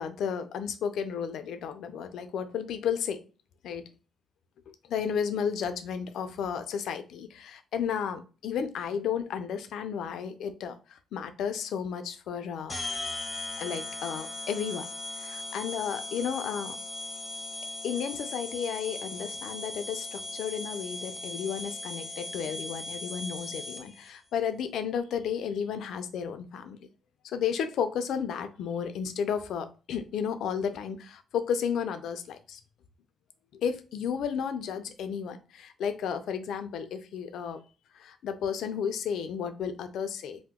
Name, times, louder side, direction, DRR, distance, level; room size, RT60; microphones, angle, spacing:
voice 1, 0.0-3.2 3.6-3.8 4.9-12.7 13.6-14.9 15.2-16.8 17.8-26.8 27.2-32.6 33.5-37.6 38.0-40.4, left 7 dB, 75° left, 9 dB, 0.4 m, -33 dB
sound 1, 12.7-24.1, left 2 dB, 25° left, 0.6 m, -38 dB
2.8 x 2.1 x 3.5 m, 0.34 s
cardioid pair, 90°, 0 cm